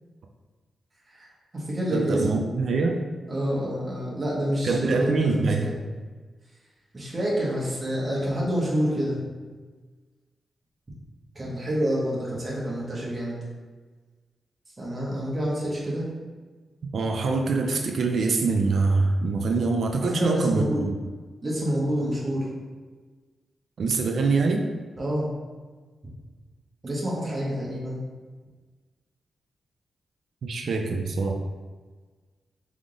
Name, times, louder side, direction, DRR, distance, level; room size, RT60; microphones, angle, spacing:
voice 1, 1.1-2.4 3.3-5.8 6.9-9.3 11.3-13.4 14.8-16.1 20.0-20.8 21.4-22.5 25.0-25.3 26.8-28.0, equal, 25° right, -6 dB, 1.2 m, -28 dB
voice 2, 1.9-3.0 4.6-5.7 16.9-20.9 23.8-24.6 30.4-31.3, right 3 dB, 65° right, 2 dB, 0.4 m, -24 dB
3.6 x 3.5 x 3.8 m, 1.4 s
cardioid pair, 105°, 0 cm